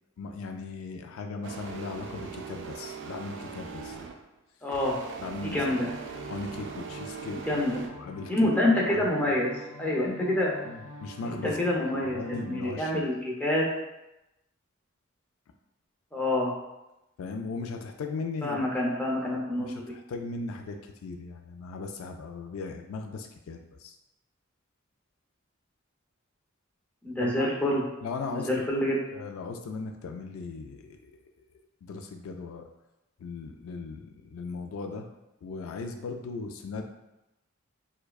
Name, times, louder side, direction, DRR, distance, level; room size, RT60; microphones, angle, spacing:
voice 1, 0.2-4.0 5.2-5.9 6.3-7.6 7.9-8.3 8.9-9.4 10.6-11.6 11.9-13.1 17.2-18.7 19.3-24.0 27.2-27.5 28.0-28.5 29.1-31.2 31.8-32.7 33.2-35.1 35.4-36.8, left 4 dB, 75° left, 5 dB, 0.3 m, -38 dB
sound 1, 1.4-4.3 4.7-7.9, right 5 dB, 60° right, 0.4 m, -41 dB
voice 2, 4.6-5.0 5.4-5.9 7.5-7.8 8.3-9.5 9.8-10.5 11.4-13.6 16.1-16.5 18.4-19.9 27.0-27.8 28.3-29.0, left 1 dB, 10° left, -4 dB, 0.6 m, -27 dB
sound 2, 5.3-12.6, right 1 dB, 20° right, 1.5 m, -45 dB
4.5 x 2.2 x 2.3 m, 0.94 s
head